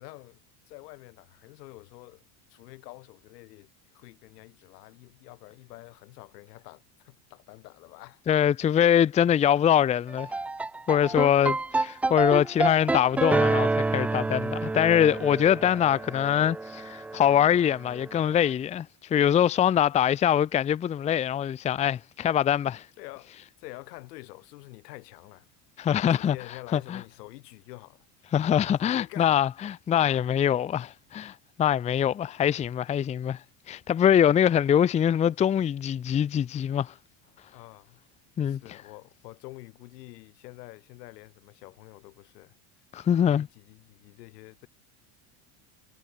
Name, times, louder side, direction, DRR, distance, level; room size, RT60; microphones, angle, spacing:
voice 1, 0.0-2.2 2.5-8.2 11.1-11.4 15.6-16.1 23.0-23.3 23.6-25.5 26.0-28.1 28.8-29.4 30.0-30.3 37.5-38.0 38.4-42.8 43.2-44.7, left 21 dB, 85° left, 7.8 m, -47 dB
voice 2, 8.3-10.3 10.9-22.8 25.8-26.4 26.7-27.0 28.3-33.4 33.7-36.9 38.4-38.6 42.9-43.5, left 9 dB, 15° left, 0.8 m, -23 dB
sound 1, 10.1-18.4, right 3 dB, 5° right, 0.3 m, -29 dB
cardioid pair, 175°, 47 cm